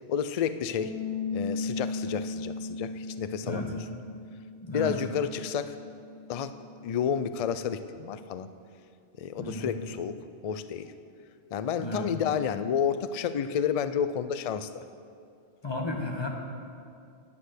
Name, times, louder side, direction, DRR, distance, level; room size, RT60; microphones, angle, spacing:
voice 1, 0.1-1.0 1.3-3.8 4.7-5.8 6.3-6.5 6.8-8.5 9.2-10.2 10.4-10.9 11.5-14.8, left 8 dB, 55° left, 12 dB, 0.4 m, -30 dB
Bass guitar, 0.8-7.0, left 3 dB, 75° right, 1.3 m, -37 dB
voice 2, 4.6-5.0 9.4-9.7 11.8-12.3 15.6-16.3, left 1 dB, 25° left, 0 dB, 1.2 m, -33 dB
10.0 x 8.4 x 6.5 m, 2.4 s
omnidirectional pair, 1.1 m